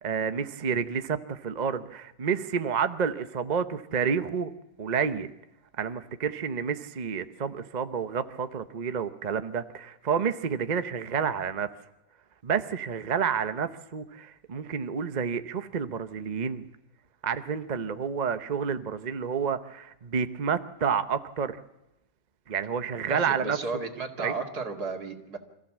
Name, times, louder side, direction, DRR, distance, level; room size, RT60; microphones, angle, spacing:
voice 1, 0.0-4.5 4.8-5.3 5.8-11.7 12.4-16.7 17.2-21.6 22.5-23.6 24.2-24.3, right 6 dB, 40° right, 10 dB, 0.6 m, -29 dB
voice 2, 23.1-25.4, right 4 dB, 60° right, 4 dB, 2.7 m, -34 dB
26.0 x 15.0 x 7.4 m, 0.93 s
omnidirectional pair, 1.9 m